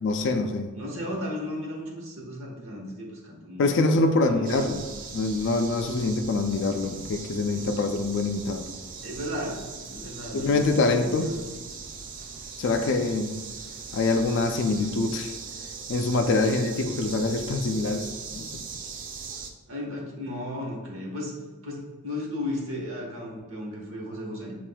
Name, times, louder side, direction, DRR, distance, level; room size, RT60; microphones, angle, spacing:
voice 1, 0.0-0.7 3.6-4.8 5.1-8.7 10.3-11.3 12.6-13.4 13.9-15.3 15.9-18.6, left 3 dB, 55° left, 6 dB, 0.4 m, -25 dB
voice 2, 0.7-3.9 4.2-4.7 9.0-11.4 19.7-21.3 21.6-24.6, left 1 dB, 60° right, -2 dB, 1.1 m, -35 dB
sound 1, 4.4-19.5, right 5 dB, 35° right, 0.3 m, -40 dB
7.2 x 2.4 x 2.2 m, 1.3 s
head